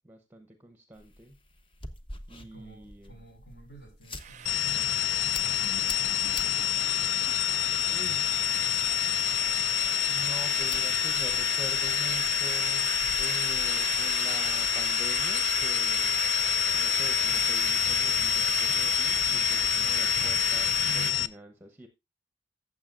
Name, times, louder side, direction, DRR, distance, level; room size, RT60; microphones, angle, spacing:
voice 1, 0.0-1.4 2.3-3.1 7.9-8.2 10.1-12.9 13.2-16.2 16.7-21.9, equal, 10° right, 6 dB, 0.8 m, -45 dB
sound 1, 0.9-14.1, left 2 dB, 30° left, 0.9 m, -48 dB
voice 2, 2.4-6.7 7.3-9.4, right 1 dB, 60° left, 2 dB, 5.4 m, -55 dB
sound 2, 4.2-21.1, right 9 dB, 40° right, 0.5 m, -35 dB
sound 3, 4.5-21.3, left 11 dB, 90° left, 0.5 m, -27 dB
15.0 x 7.2 x 2.5 m, 0.23 s
head